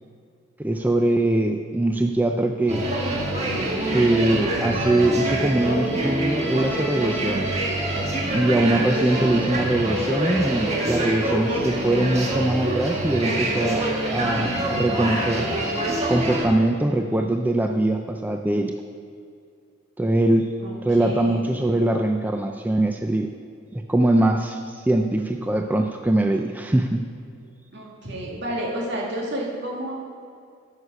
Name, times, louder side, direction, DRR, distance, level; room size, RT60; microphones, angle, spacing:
voice 1, 0.6-2.8 3.8-7.6 8.3-13.9 14.1-15.5 16.1-18.7 20.0-20.5 20.9-23.3 23.7-27.0, right 1 dB, 10° right, 4 dB, 0.3 m, -22 dB
sound 1, 2.7-16.4, right 1 dB, 35° right, 1.5 m, -25 dB
voice 2, 20.6-21.6 27.7-29.9, right 1 dB, 60° right, -3 dB, 2.2 m, -31 dB
9.4 x 6.5 x 5.7 m, 2.3 s
head